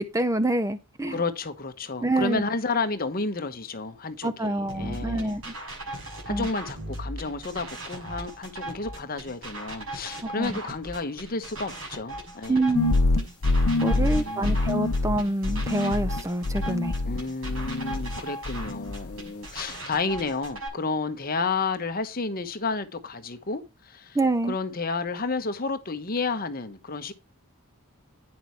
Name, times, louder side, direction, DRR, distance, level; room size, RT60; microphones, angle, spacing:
voice 1, 0.0-1.2 2.0-2.4 4.2-5.5 6.3-6.5 10.2-10.6 12.5-13.0 13.8-16.9 24.1-24.6, right 2 dB, 15° right, 0.5 m, -26 dB
voice 2, 1.1-5.4 6.2-12.6 13.8-14.6 17.0-24.2 24.5-27.1, left 3 dB, 40° left, 1.0 m, -31 dB
sound 1, 4.7-20.7, right 1 dB, 70° right, 6.7 m, -38 dB
sound 2, 12.7-18.2 18.4-19.2, left 2 dB, 85° left, 0.7 m, -25 dB
9.6 x 6.1 x 4.5 m
head